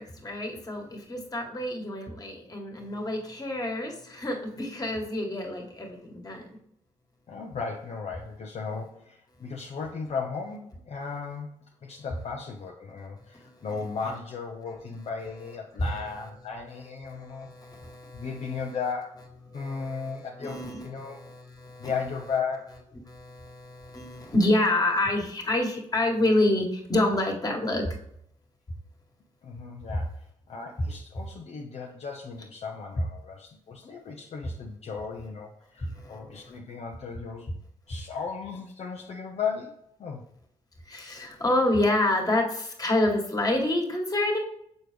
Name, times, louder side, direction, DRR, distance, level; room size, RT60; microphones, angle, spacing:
voice 1, 0.0-6.5 13.4-13.5 15.8-15.9 17.1-18.3 19.5-20.1 20.4-21.9 23.1-27.9 35.8-36.2 40.9-44.4, left 1 dB, 25° left, 1 dB, 1.7 m, -28 dB
voice 2, 7.3-11.5 11.8-17.5 18.1-21.2 21.8-22.8 29.4-37.5 37.9-40.2, left 5 dB, 50° left, 0 dB, 0.8 m, -36 dB
6.5 x 4.5 x 3.4 m, 0.73 s
supercardioid pair, 55°, 14 cm